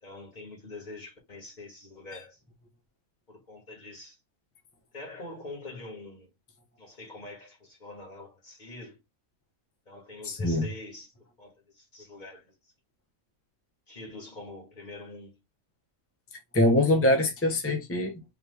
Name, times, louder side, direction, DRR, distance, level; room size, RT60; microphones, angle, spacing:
voice 1, 0.0-2.4 3.3-4.2 4.9-6.3 6.8-9.0 9.9-11.1 11.4-12.7 13.9-15.4, left 2 dB, 30° left, 1.7 m, -44 dB
voice 2, 10.2-10.6 16.5-18.2, left 1 dB, 15° left, 0.5 m, -23 dB
4.1 x 3.0 x 3.3 m
omnidirectional pair, 1.5 m